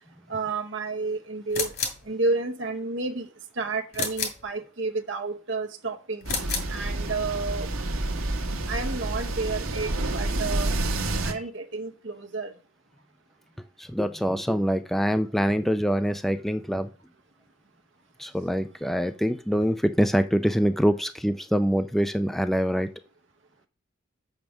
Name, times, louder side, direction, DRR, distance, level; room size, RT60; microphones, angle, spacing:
voice 1, 0.3-1.7 2.1-3.3 3.6-6.3 6.7-7.7 8.7-10.7 11.2-12.5, right 3 dB, 60° right, 0.8 m, -30 dB
sound 1, 1.5-2.1 3.9-4.5 6.2-6.8, left 5 dB, 50° left, 2.3 m, -30 dB
sound 2, 6.2-11.3, right 2 dB, 85° right, 1.5 m, -29 dB
voice 2, 13.8-16.9 18.2-22.9, equal, ahead, 0.3 m, -25 dB
7.5 x 5.3 x 6.1 m
head